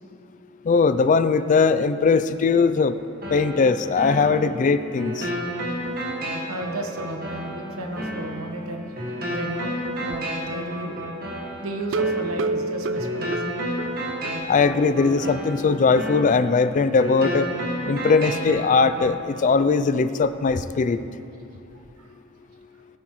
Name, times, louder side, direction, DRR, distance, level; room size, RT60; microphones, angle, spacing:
voice 1, 0.7-2.9 3.3-5.3 14.5-17.5 17.9-21.0, left 4 dB, 35° left, 13 dB, 0.3 m, -20 dB
sound 1, 3.2-19.2, equal, 45° right, 1.6 m, -32 dB
voice 2, 6.5-8.9 9.3-11.0 11.6-13.6 21.7-22.1, right 1 dB, 85° right, 4 dB, 1.1 m, -33 dB
sound 2, 11.8-14.4 14.7-14.8 15.2-15.3 15.6-15.7, right 3 dB, 60° right, 0.4 m, -28 dB
18.5 x 8.5 x 3.1 m, 2.7 s
head